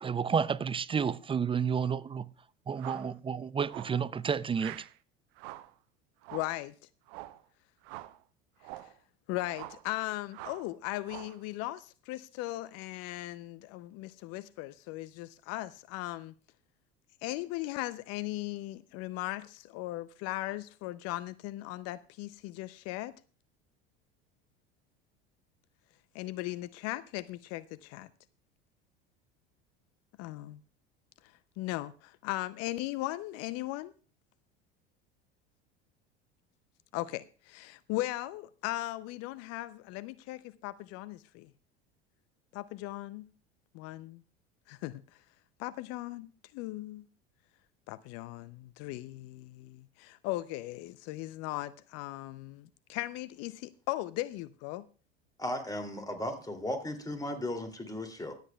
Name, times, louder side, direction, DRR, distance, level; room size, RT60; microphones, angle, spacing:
voice 1, 0.0-2.3 2.7-4.8, right 6 dB, 20° right, 0.4 m, -30 dB
sound 1, 2.7-3.1 3.7-4.0 4.5-4.9 5.4-5.7 6.2-6.6 7.1-7.4 7.8-8.2 8.6-8.9 9.5-9.9 10.3-10.7 11.0-11.4, right 17 dB, 60° right, 0.7 m, -45 dB
voice 2, 6.3-6.7 8.8-8.9 9.3-16.3 17.2-23.1 26.1-28.1 30.2-30.6 31.6-33.9 36.9-41.5 42.5-43.3 43.7-44.2 44.7-45.0 45.6-47.0 47.9-54.8, left 17 dB, 50° left, 0.6 m, -38 dB
voice 3, 55.4-58.3, left 1 dB, 10° left, 2.6 m, -36 dB
24.5 x 8.3 x 2.3 m
hypercardioid pair, 75°, 31 cm